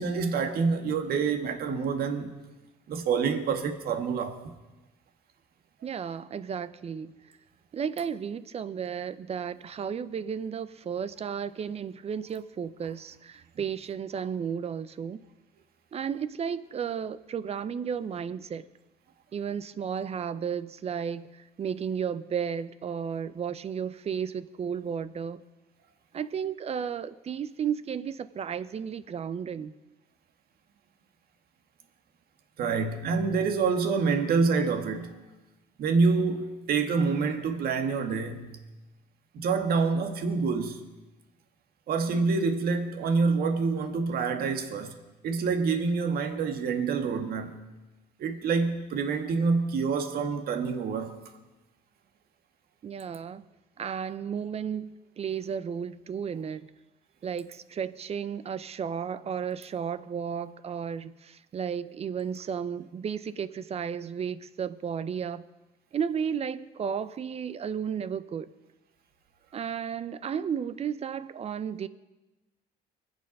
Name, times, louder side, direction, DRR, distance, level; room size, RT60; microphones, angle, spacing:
voice 1, 0.0-2.3 2.9-4.4 32.6-35.1 35.8-38.6 39.3-40.8 41.9-44.9 45.2-47.5 48.2-51.2, right 4 dB, 65° right, 1.9 m, -27 dB
voice 2, 5.8-7.1 7.7-15.2 15.9-18.7 19.3-25.4 26.1-29.7 52.8-53.4 53.8-56.7 57.2-65.4 65.9-68.5 69.5-71.9, right 7 dB, 40° right, 0.6 m, -33 dB
24.0 x 8.1 x 5.4 m
cardioid pair, 110°, 17 cm